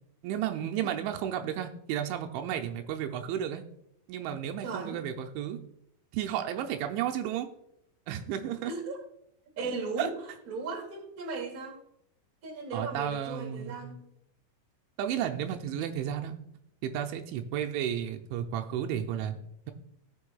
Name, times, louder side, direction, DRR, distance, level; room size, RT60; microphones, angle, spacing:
voice 1, 0.2-3.6 4.1-5.6 6.1-7.5 8.1-8.7 10.0-10.1 12.7-13.9 15.0-16.3 16.8-19.7, right 10 dB, 85° right, 4 dB, 3.0 m, -33 dB
voice 2, 4.6-5.0 8.6-9.0 9.5-10.2 10.5-11.8 12.4-14.0, right 3 dB, 35° right, -1 dB, 1.5 m, -37 dB
18.0 x 6.3 x 2.3 m, 0.76 s
omnidirectional pair, 5.4 m